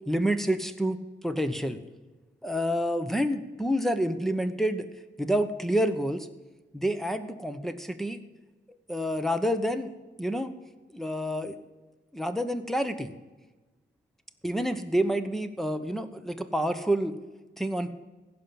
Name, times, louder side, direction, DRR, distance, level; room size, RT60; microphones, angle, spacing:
voice 1, 0.1-1.0 1.2-1.8 2.4-4.9 5.2-6.3 6.7-8.2 8.9-9.9 10.2-10.5 10.9-11.6 12.1-13.1 14.4-17.1 17.6-17.9, equal, ahead, 6 dB, 1.0 m, -28 dB
15.5 x 5.8 x 7.8 m, 1.2 s
cardioid pair, 75°, 19 cm